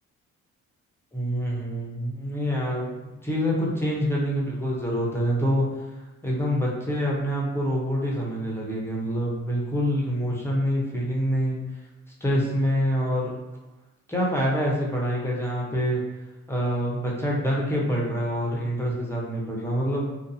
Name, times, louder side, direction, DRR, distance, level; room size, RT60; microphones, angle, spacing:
voice 1, 1.1-5.7 6.0-11.6 12.2-13.3 14.1-16.0 16.5-20.1, equal, 10° left, -4 dB, 0.7 m, -26 dB
2.5 x 2.2 x 2.6 m, 1.1 s
cardioid pair, 90°, 30 cm